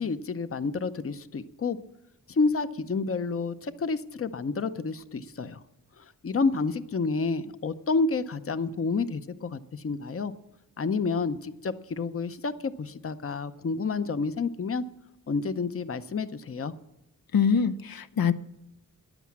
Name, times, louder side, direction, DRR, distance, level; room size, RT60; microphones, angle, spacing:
voice 1, 0.0-1.8 2.3-5.6 6.2-10.3 10.8-14.8 15.3-16.7, left 4 dB, 40° left, 12 dB, 0.7 m, -29 dB
voice 2, 17.3-18.3, left 6 dB, 75° left, 12 dB, 0.7 m, -24 dB
14.0 x 10.5 x 7.4 m, 0.88 s
wide cardioid pair, 120°, 36 cm